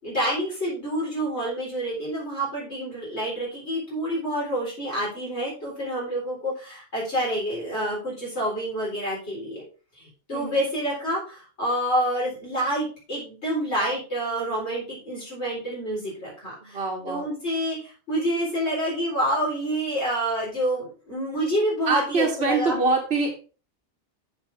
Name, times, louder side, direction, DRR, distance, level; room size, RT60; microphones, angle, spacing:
voice 1, 0.0-9.6 10.0-16.8 17.1-22.8, right 1 dB, 65° left, -6 dB, 4.4 m, -28 dB
voice 2, 10.3-10.6 16.7-17.3 21.9-23.3, right 3 dB, 60° right, -2 dB, 1.6 m, -24 dB
13.5 x 4.9 x 3.5 m, 0.36 s
omnidirectional pair, 1.2 m